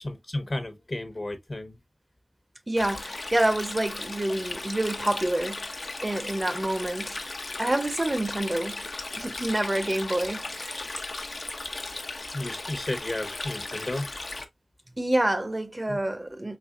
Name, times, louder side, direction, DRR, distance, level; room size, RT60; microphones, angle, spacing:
voice 1, 0.0-1.8 12.3-14.1 15.9-16.0, left 1 dB, 45° left, 0.9 m, -33 dB
voice 2, 2.7-5.7 6.0-7.2 7.6-8.8 9.2-11.0 15.0-16.6, right 1 dB, 30° right, 0.6 m, -27 dB
Stream, 2.8-14.4, left 2 dB, 70° left, 0.7 m, -36 dB
4.2 x 3.3 x 2.4 m
wide cardioid pair, 70°, 0 cm